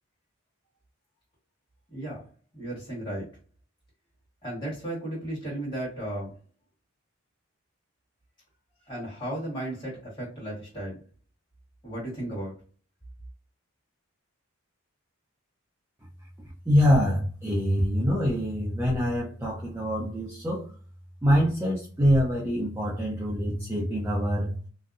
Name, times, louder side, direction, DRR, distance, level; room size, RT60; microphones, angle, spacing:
voice 1, 1.9-2.2 2.5-3.3 4.4-6.3 8.9-11.0 11.8-12.5, right 1 dB, 20° left, -7 dB, 1.4 m, -34 dB
voice 2, 16.7-20.7 21.2-24.6, equal, 10° right, -6 dB, 0.4 m, -25 dB
2.6 x 2.1 x 2.4 m, 0.39 s
head